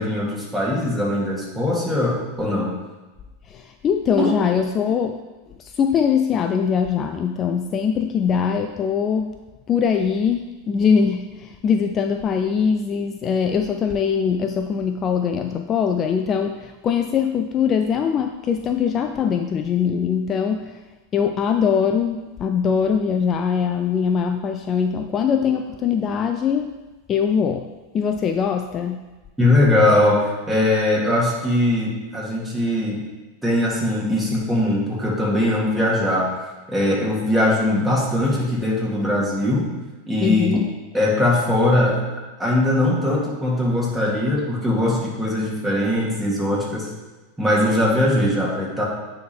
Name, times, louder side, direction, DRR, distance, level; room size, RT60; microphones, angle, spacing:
voice 1, 0.0-2.7 4.2-4.3 29.4-33.0 33.4-36.3 36.7-39.7 40.1-40.6 40.9-42.0 42.4-46.9 47.4-48.8, left 1 dB, 5° right, -5 dB, 2.4 m, -20 dB
voice 2, 3.5-5.2 5.6-9.4 9.7-20.8 21.1-26.7 27.1-29.1 40.2-40.7, left 7 dB, 35° left, 6 dB, 0.4 m, -22 dB
9.4 x 3.6 x 4.5 m, 1.2 s
hypercardioid pair, 90°, 0 cm